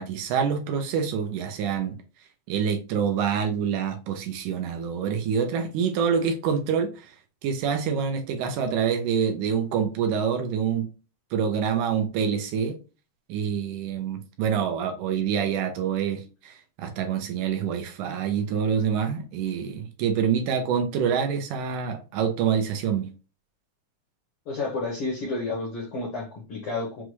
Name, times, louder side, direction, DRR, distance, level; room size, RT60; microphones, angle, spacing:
voice 1, 0.0-2.0 2.5-7.2 7.4-10.9 11.3-12.8 13.3-23.1, right 7 dB, 80° right, 2.0 m, -26 dB
voice 2, 24.5-27.0, left 3 dB, 70° left, 1.3 m, -31 dB
6.1 x 2.2 x 3.1 m
omnidirectional pair, 3.9 m